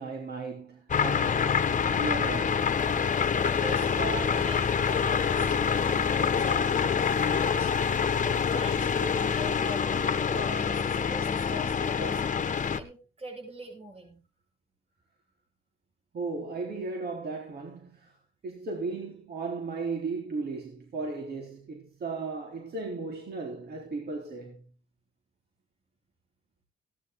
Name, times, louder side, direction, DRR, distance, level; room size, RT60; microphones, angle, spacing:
voice 1, 0.0-1.4 2.0-2.7 16.1-18.2 18.4-24.6, right 3 dB, 55° right, 3.7 m, -35 dB
sound 1, 0.9-12.8, left 6 dB, 40° left, 1.4 m, -26 dB
voice 2, 3.4-7.7 8.2-12.2 12.6-14.2, right 2 dB, 30° right, 7.9 m, -42 dB
17.0 x 11.0 x 3.7 m
cardioid pair, 90°, 20 cm